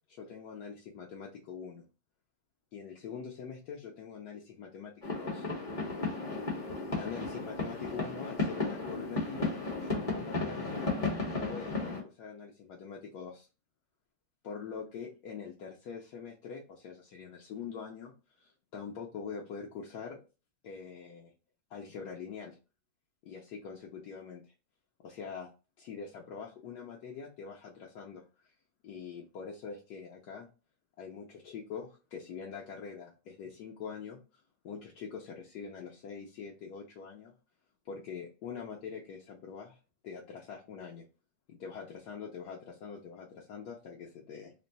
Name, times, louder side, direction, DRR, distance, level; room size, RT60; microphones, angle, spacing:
voice 1, 0.1-1.8 2.7-5.5 7.0-10.8 11.3-13.5 14.4-20.2 20.6-21.3 21.7-22.5 23.2-24.5 25.0-25.5 25.8-28.5 28.8-30.5 31.0-34.2 34.6-37.3 37.8-39.8 40.0-41.0 41.5-44.5, left 6 dB, 75° left, -2 dB, 1.2 m, -44 dB
sound 1, 5.0-12.0, left 3 dB, 25° left, 0.9 m, -34 dB
3.7 x 2.2 x 3.9 m, 0.33 s
omnidirectional pair, 1.8 m